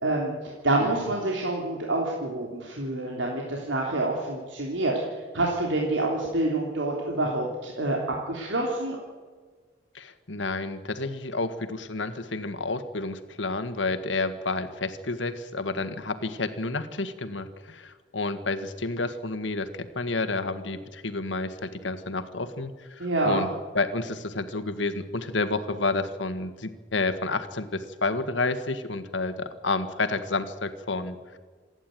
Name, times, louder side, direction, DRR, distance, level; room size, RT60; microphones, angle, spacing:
voice 1, 0.0-4.9 5.3-8.0 8.3-9.0 23.0-23.5, right 2 dB, 85° right, -2 dB, 3.4 m, -27 dB
voice 2, 9.9-23.5 23.7-31.4, left 3 dB, 90° left, 10 dB, 1.7 m, -30 dB
27.5 x 11.0 x 9.3 m, 1.5 s
head